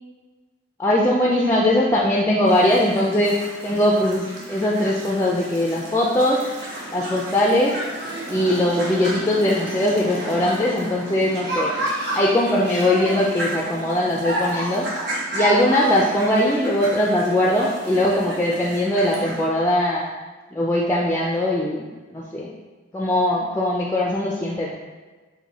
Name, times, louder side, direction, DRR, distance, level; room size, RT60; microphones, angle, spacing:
voice 1, 0.8-3.4 3.6-6.4 6.9-7.7 8.3-11.7 12.1-14.9 15.3-20.0 20.5-21.8 22.1-22.5 22.9-24.7, left 1 dB, 15° left, -3 dB, 0.3 m, -20 dB
sound 1, 2.5-19.4, right 1 dB, 60° right, 1.0 m, -31 dB
4.6 x 2.2 x 3.9 m, 1.3 s
head